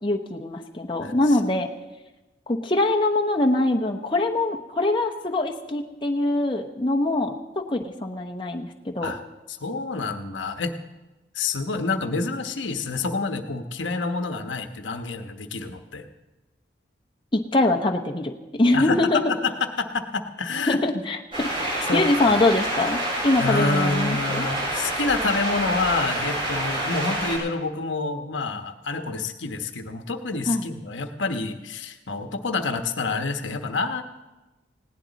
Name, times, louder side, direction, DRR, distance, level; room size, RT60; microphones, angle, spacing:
voice 1, 0.0-1.7 2.5-9.1 17.3-19.4 20.7-24.5 30.5-30.7, left 2 dB, 25° left, 2 dB, 1.0 m, -23 dB
voice 2, 9.5-10.7 11.3-16.1 18.7-19.5 19.8-20.8 21.9-22.4 23.4-34.0, left 3 dB, 85° left, 7 dB, 1.1 m, -28 dB
sound 1, 21.3-27.4, right 1 dB, 30° right, 7.9 m, -27 dB
19.5 x 17.0 x 4.1 m, 1.1 s
head